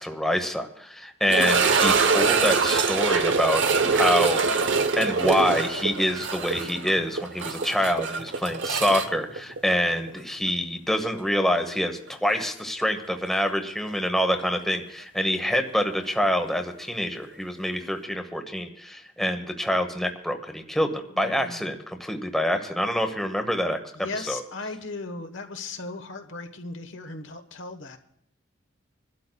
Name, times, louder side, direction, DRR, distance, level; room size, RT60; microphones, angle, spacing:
voice 1, 0.0-4.7 5.0-23.8 24.3-24.4, equal, ahead, 5 dB, 0.9 m, -26 dB
sound 1, 1.3-10.2 10.5-10.6 11.2-11.3 13.9-14.0, right 4 dB, 65° right, 0.8 m, -24 dB
voice 2, 21.1-21.8 23.9-28.0, left 3 dB, 70° left, 7 dB, 1.2 m, -37 dB
27.0 x 12.0 x 2.3 m, 0.70 s
head